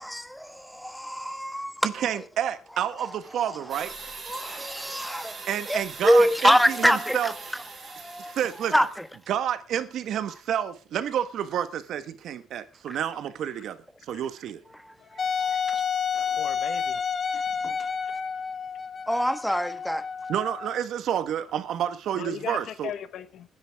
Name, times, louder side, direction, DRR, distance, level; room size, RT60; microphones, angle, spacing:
voice 1, 0.0-1.7 4.3-5.4 5.7-7.3 7.9-8.4 8.7-8.9 15.1-15.8 17.6-17.7 19.1-20.0, equal, ahead, 1.4 m, -25 dB
voice 2, 1.8-3.9 5.5-7.3 8.2-8.7 9.3-13.8 14.1-14.6 20.3-22.9, right 10 dB, 75° right, 1.3 m, -29 dB
sound 1, 3.7-9.1, right 4 dB, 45° right, 6.1 m, -41 dB
Wind instrument woodwind instrument, 15.2-20.8, left 6 dB, 45° left, 1.5 m, -30 dB
voice 3, 16.1-17.0 19.5-19.6 22.2-23.5, left 10 dB, 75° left, 1.2 m, -37 dB
19.5 x 11.0 x 3.6 m
cardioid pair, 90°, 0 cm